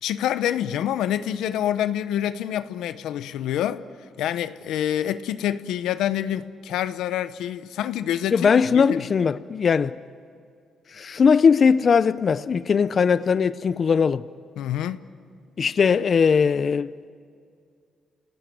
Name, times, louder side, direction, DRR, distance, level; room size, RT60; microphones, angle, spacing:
voice 1, 0.0-3.8 4.2-9.0 14.6-15.0, left 11 dB, 90° left, 0.8 m, -27 dB
voice 2, 8.3-10.0 10.9-14.2 15.6-16.9, left 6 dB, 45° left, 0.6 m, -19 dB
29.5 x 18.5 x 9.4 m
cardioid pair, 90°, 0 cm